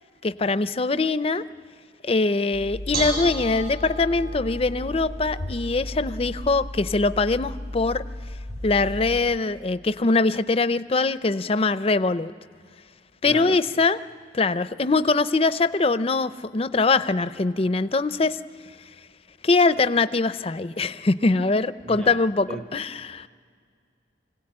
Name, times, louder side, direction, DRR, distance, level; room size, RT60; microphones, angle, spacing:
voice 1, 0.2-1.4 2.0-8.0 8.6-12.3 13.2-14.0 14.3-18.4 19.4-23.3, left 3 dB, 30° left, 13 dB, 0.5 m, -22 dB
Bell / Dishes pots and pans, 2.5-9.2, equal, 60° right, 7.0 m, -33 dB
voice 2, 13.2-13.6 21.8-22.2 22.5-22.7, right 2 dB, 25° right, 6 dB, 0.7 m, -37 dB
25.5 x 17.0 x 8.7 m, 2.1 s
head